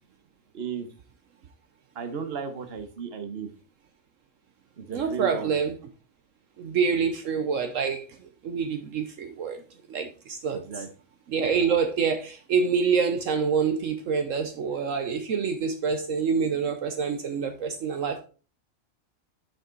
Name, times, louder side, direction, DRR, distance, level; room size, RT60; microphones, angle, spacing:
voice 1, 0.5-0.9 1.9-3.5 4.8-5.6 6.9-7.0 10.5-10.9, right 6 dB, 50° right, 1.3 m, -34 dB
voice 2, 4.9-5.8 6.6-9.6 9.9-10.8 11.3-18.2, right 6 dB, 70° right, 1.2 m, -27 dB
10.0 x 5.4 x 3.9 m
omnidirectional pair, 1.4 m